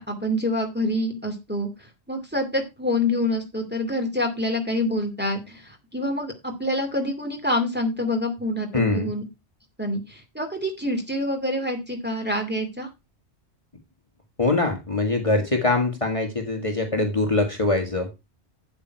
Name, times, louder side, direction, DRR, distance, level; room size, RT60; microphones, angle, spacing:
voice 1, 0.0-1.7 2.1-9.2 9.8-12.9, left 1 dB, 10° right, 2 dB, 2.3 m, -26 dB
voice 2, 8.7-9.1 14.4-18.1, left 2 dB, 30° left, 3 dB, 1.6 m, -23 dB
8.4 x 8.2 x 4.5 m, 0.24 s
omnidirectional pair, 1.1 m